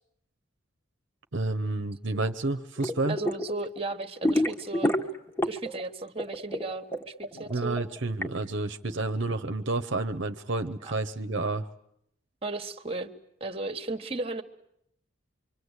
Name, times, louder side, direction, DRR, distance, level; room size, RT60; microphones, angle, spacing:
voice 1, 1.3-3.2 7.3-11.7, right 2 dB, 65° right, 9 dB, 1.0 m, -30 dB
sound 1, 2.8-3.5 3.8-5.8 6.1-8.3, left 1 dB, 10° left, 1.5 m, -28 dB
voice 2, 3.1-4.9 5.4-7.8 10.8-10.9 12.4-13.1 13.4-14.4, right 2 dB, 30° right, 10 dB, 1.4 m, -35 dB
26.0 x 25.0 x 8.2 m, 0.76 s
head